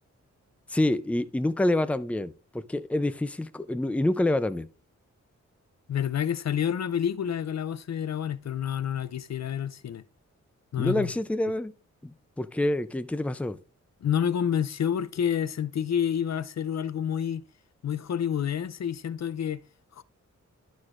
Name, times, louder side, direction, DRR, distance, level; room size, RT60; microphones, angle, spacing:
voice 1, 0.7-4.7 10.8-11.7 12.0-13.6, left 1 dB, 5° left, 0.5 m, -27 dB
voice 2, 5.9-10.0 10.7-11.1 14.0-17.4 17.8-19.6 19.9-20.0, left 9 dB, 60° left, 0.5 m, -28 dB
12.0 x 6.2 x 2.5 m
cardioid pair, 75°, 30 cm